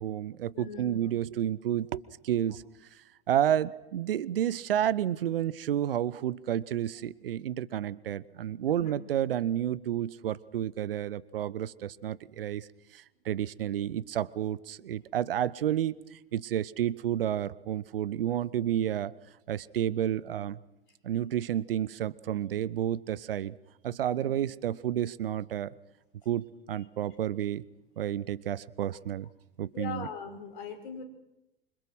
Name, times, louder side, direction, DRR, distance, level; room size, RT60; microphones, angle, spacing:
voice 1, 0.0-2.6 2.9-19.1 19.5-20.6 21.0-23.5 23.8-25.7 26.3-27.6 28.0-29.3 29.6-30.1, right 11 dB, 65° right, 19 dB, 1.0 m, -31 dB
voice 2, 0.5-1.0 8.8-8.9 24.2-24.3 29.7-31.0, left 5 dB, 55° left, 6 dB, 6.2 m, -40 dB
27.0 x 25.5 x 6.3 m, 0.92 s
figure-of-eight pair, 90°, 31 cm